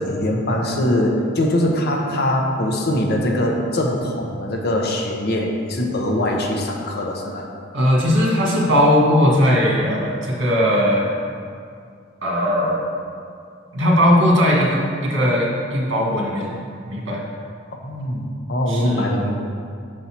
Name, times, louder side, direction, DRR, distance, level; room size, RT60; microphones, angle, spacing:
voice 1, 0.0-7.5 17.8-19.4, left 1 dB, 55° left, 1 dB, 0.8 m, -22 dB
voice 2, 7.7-11.1 12.2-12.8 13.7-16.5 16.8-17.2 18.7-19.1, equal, 65° right, -3 dB, 1.7 m, -18 dB
6.5 x 4.2 x 5.8 m, 2.3 s
head